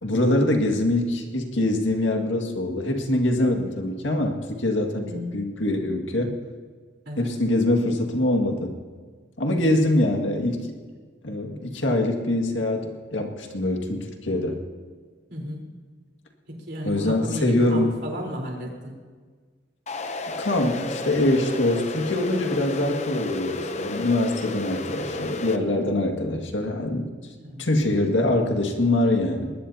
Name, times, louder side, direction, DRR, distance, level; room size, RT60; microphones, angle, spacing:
voice 1, 0.0-6.3 7.2-8.7 9.4-10.7 11.2-14.6 16.8-17.9 20.4-27.1 27.6-29.5, left 1 dB, 85° left, 3 dB, 2.1 m, -24 dB
voice 2, 15.3-15.6 16.7-18.9 27.4-27.6, equal, 65° right, -1 dB, 4.2 m, -33 dB
sound 1, 19.9-25.6, left 3 dB, 35° left, 0.7 m, -32 dB
21.0 x 20.0 x 2.9 m, 1.5 s
head